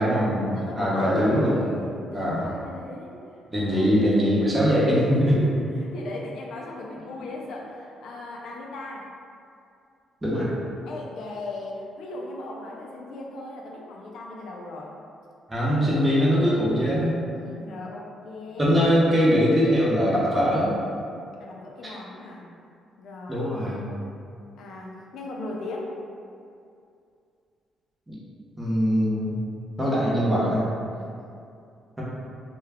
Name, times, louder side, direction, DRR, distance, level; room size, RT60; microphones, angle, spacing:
voice 1, 0.0-1.6 2.1-2.5 3.5-5.3 10.2-10.5 15.5-17.2 18.6-20.8 21.8-21.9 23.3-23.9 28.1-28.2 28.6-29.4 29.8-30.7, equal, 15° right, -7 dB, 0.8 m, -22 dB
voice 2, 0.5-3.2 3.6-3.9 5.1-5.5 5.8-9.1 10.9-14.9 17.3-18.9 21.4-22.4 23.0-23.5 24.6-25.9 30.9-31.2, left 2 dB, 75° left, -2 dB, 0.4 m, -38 dB
2.3 x 2.2 x 3.4 m, 2.5 s
cardioid pair, 90°, 0 cm